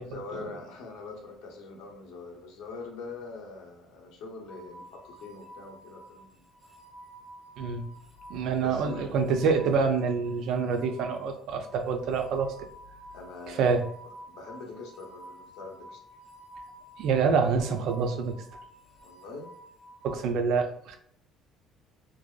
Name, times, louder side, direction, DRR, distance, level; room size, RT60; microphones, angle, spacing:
voice 1, 0.0-6.5 8.6-9.2 13.1-13.8 14.3-16.0 19.0-19.5, left 3 dB, 75° left, 1 dB, 0.6 m, -43 dB
sound 1, 4.5-20.2, right 1 dB, 5° left, 0.6 m, -50 dB
voice 2, 7.6-7.9 8.3-12.5 13.5-13.9 17.0-18.4 20.0-21.0, right 5 dB, 55° right, 6 dB, 0.3 m, -26 dB
2.6 x 2.2 x 2.3 m, 0.66 s
cardioid pair, 170°, 0 cm